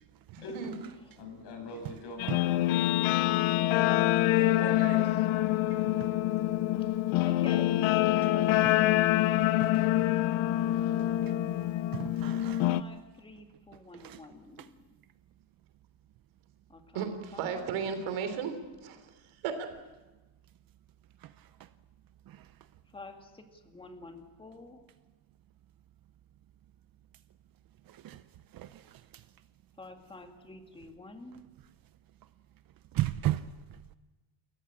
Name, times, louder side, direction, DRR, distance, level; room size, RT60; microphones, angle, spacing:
voice 1, 0.3-0.7 4.5-5.2 16.9-18.6 18.8-19.1 19.4-19.5, right 7 dB, 75° right, 3.6 m, -35 dB
voice 2, 1.2-2.9 5.2-5.5, left 2 dB, 55° left, 6.5 m, -44 dB
Guitar, 2.2-12.8, left 14 dB, 80° left, 0.8 m, -26 dB
voice 3, 3.8-4.8 7.2-8.9 12.7-14.9 16.7-17.7 22.9-24.8 29.8-31.4, left 2 dB, 10° left, 2.0 m, -48 dB
voice 4, 8.6-9.0 9.4-9.7 11.2-11.3 11.9-12.7 13.9-14.2 14.6-14.7 22.3-22.4 27.9-28.2 28.5-28.8 32.9-33.5, right 14 dB, 45° right, 0.7 m, -34 dB
29.0 x 14.5 x 8.8 m
cardioid pair, 160°, 48 cm